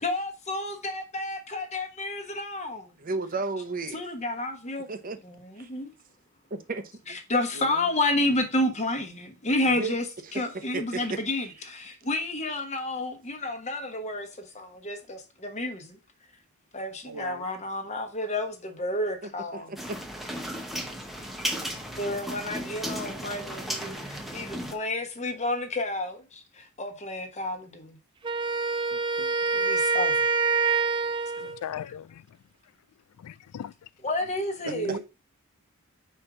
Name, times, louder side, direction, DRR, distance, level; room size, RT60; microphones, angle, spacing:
voice 1, 0.0-2.9 3.9-4.9 5.2-5.9 7.1-10.1 10.3-16.0 16.7-19.7 22.0-28.0 29.5-30.1 34.0-35.0, left 2 dB, 30° left, 1.1 m, -30 dB
voice 2, 3.0-4.0 4.9-5.2 5.6-5.7 6.5-6.8 7.1-7.2 9.8-10.0 10.3-11.2 11.4-11.5 19.5-20.0, right 3 dB, 40° right, 0.8 m, -33 dB
voice 3, 7.5-7.9 17.1-17.5 28.9-29.3 34.6-35.0, right 4 dB, 90° right, 0.7 m, -39 dB
sound 1, 19.8-24.7, equal, ahead, 0.8 m, -35 dB
Wind instrument woodwind instrument, 28.2-31.6, right 4 dB, 20° right, 0.3 m, -26 dB
voice 4, 31.4-32.3 33.2-33.7, left 10 dB, 90° left, 0.3 m, -38 dB
5.1 x 4.5 x 4.9 m
head